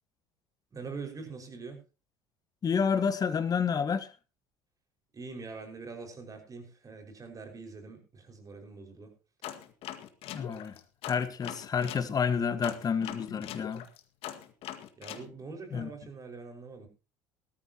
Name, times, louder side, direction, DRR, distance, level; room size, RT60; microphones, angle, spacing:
voice 1, 0.7-1.8 5.1-9.1 15.0-16.9, right 4 dB, 30° right, 5.6 m, -43 dB
voice 2, 2.6-4.1 10.3-10.8 11.1-13.8 15.7-15.9, left 6 dB, 35° left, 1.6 m, -29 dB
sound 1, 9.4-12.1 12.6-15.3, left 11 dB, 60° left, 1.8 m, -42 dB
19.0 x 13.5 x 3.0 m
hypercardioid pair, 75°, 11 cm